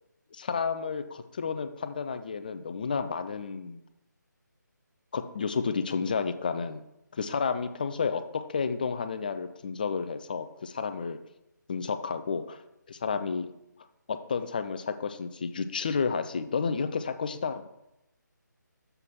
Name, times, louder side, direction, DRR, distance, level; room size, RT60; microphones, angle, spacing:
voice 1, 0.3-3.8 5.1-6.8 7.1-11.2 11.7-12.6 12.9-13.5 14.1-17.7, left 5 dB, 25° left, 10 dB, 0.4 m, -31 dB
6.8 x 5.7 x 3.6 m, 0.86 s
figure-of-eight pair, 155°, 10 cm